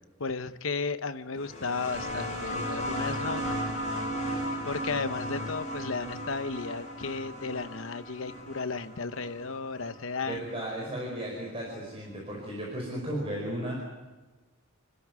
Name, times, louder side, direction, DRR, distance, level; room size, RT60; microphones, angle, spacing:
voice 1, 0.2-3.5 3.8-4.1 4.6-10.7, left 4 dB, 70° left, 11 dB, 0.9 m, -34 dB
sound 1, 1.4-10.6 11.8-11.9, equal, 35° left, 7.7 m, -35 dB
voice 2, 10.3-13.8, right 1 dB, 30° right, -2 dB, 5.3 m, -35 dB
29.0 x 12.5 x 9.6 m, 1.2 s
head